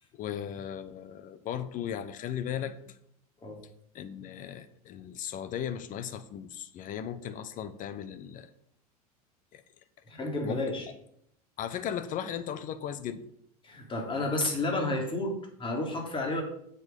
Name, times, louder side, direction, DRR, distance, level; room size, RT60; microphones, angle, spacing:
voice 1, 0.1-2.9 3.9-8.5 9.5-9.6 10.4-10.6 11.6-13.2, left 9 dB, 40° left, 13 dB, 1.0 m, -37 dB
voice 2, 10.1-10.9 13.6-16.4, left 2 dB, 25° left, 1 dB, 2.9 m, -31 dB
7.8 x 7.0 x 5.4 m, 0.70 s
hypercardioid pair, 85°, 20 cm